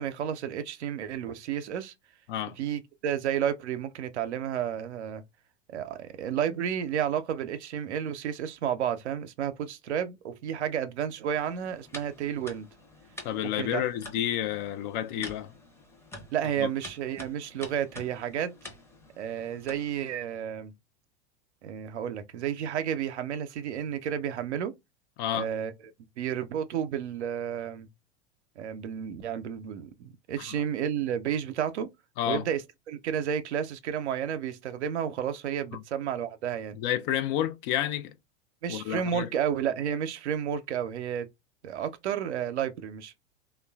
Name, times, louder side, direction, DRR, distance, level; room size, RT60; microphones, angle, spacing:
voice 1, 0.0-1.9 2.5-5.2 5.7-12.7 13.6-13.8 15.1-15.3 16.3-18.5 19.2-20.7 21.6-24.7 25.3-25.7 26.0-27.9 28.6-31.9 32.3-32.6 32.9-36.8 38.6-41.3 41.6-43.2, right 9 dB, 80° right, 0.6 m, -31 dB
sound 1, 11.3-20.2, left 1 dB, 10° left, 0.7 m, -48 dB
voice 2, 13.2-15.5 16.6-16.7 25.2-25.5 32.2-32.4 36.8-38.1 38.7-39.3, left 11 dB, 50° left, 0.5 m, -30 dB
2.9 x 2.3 x 2.3 m
hypercardioid pair, 95°, 34 cm